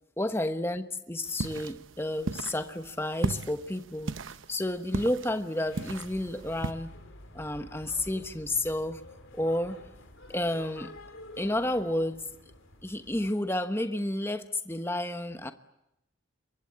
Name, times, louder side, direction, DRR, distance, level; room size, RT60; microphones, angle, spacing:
voice 1, 0.2-4.2 4.5-6.9 7.3-9.0 9.3-9.8 10.3-10.9 11.4-12.3 12.8-15.5, left 1 dB, 10° left, 8 dB, 1.1 m, -31 dB
sound 1, 1.3-6.7, right 3 dB, 80° right, 0.9 m, -36 dB
sound 2, 5.7-13.3, left 2 dB, 90° left, 4.1 m, -49 dB
26.5 x 23.0 x 8.6 m, 0.85 s
head